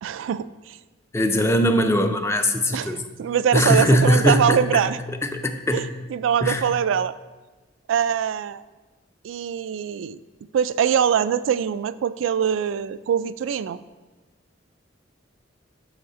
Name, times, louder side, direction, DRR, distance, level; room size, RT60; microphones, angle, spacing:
voice 1, 0.0-0.8 2.7-5.0 5.7-7.1 7.9-8.6 9.2-10.2 10.5-13.8, right 8 dB, 85° right, 16 dB, 0.3 m, -23 dB
voice 2, 1.1-3.0 3.5-4.8 5.2-5.8 6.4-6.6, left 1 dB, 15° left, 7 dB, 0.4 m, -20 dB
6.3 x 5.1 x 5.0 m, 1.2 s
head